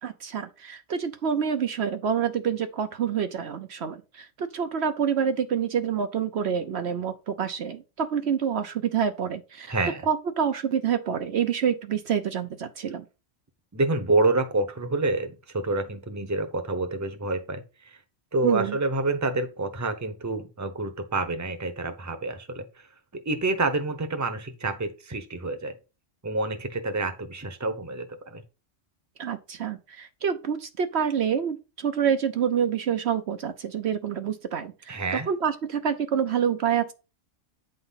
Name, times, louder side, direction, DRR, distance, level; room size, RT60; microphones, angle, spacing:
voice 1, 0.0-9.7 10.1-13.0 18.4-18.8 29.2-35.0 35.3-36.9, right 7 dB, 65° right, 1.0 m, -27 dB
voice 2, 9.7-10.1 13.7-18.0 18.3-22.9 23.1-25.8 26.2-28.4 34.9-35.3, right 2 dB, 15° right, 0.9 m, -28 dB
9.0 x 3.9 x 5.6 m
omnidirectional pair, 1.3 m